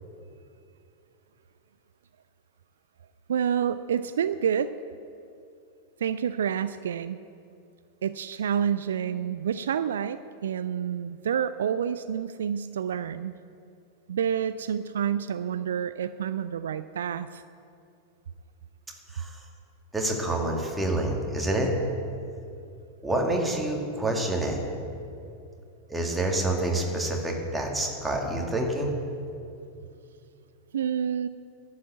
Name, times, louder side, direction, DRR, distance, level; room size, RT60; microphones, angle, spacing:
voice 1, 3.3-4.7 6.0-7.2 8.0-13.3 14.1-17.4 30.7-31.3, right 8 dB, 65° right, 13 dB, 0.3 m, -28 dB
voice 2, 19.9-21.7 23.0-24.6 25.9-28.9, right 1 dB, 5° right, 0 dB, 2.2 m, -27 dB
11.5 x 8.6 x 8.2 m, 2.6 s
figure-of-eight pair, 90°, 0 cm